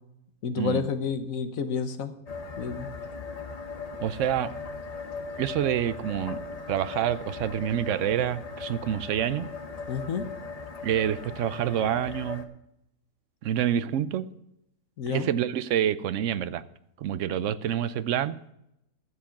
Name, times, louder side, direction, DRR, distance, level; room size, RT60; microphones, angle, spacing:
voice 1, 0.4-2.2 2.6-2.9 9.9-10.3 15.0-15.3, left 6 dB, 60° left, 9 dB, 1.3 m, -30 dB
sound 1, 2.3-12.4, left 4 dB, 35° left, 0.7 m, -39 dB
voice 2, 4.0-4.5 5.4-6.4 6.7-9.5 10.8-12.5 13.4-14.3 15.1-16.6 17.0-18.4, right 10 dB, 65° right, 15 dB, 0.8 m, -27 dB
13.0 x 7.4 x 5.8 m, 0.81 s
omnidirectional pair, 1.7 m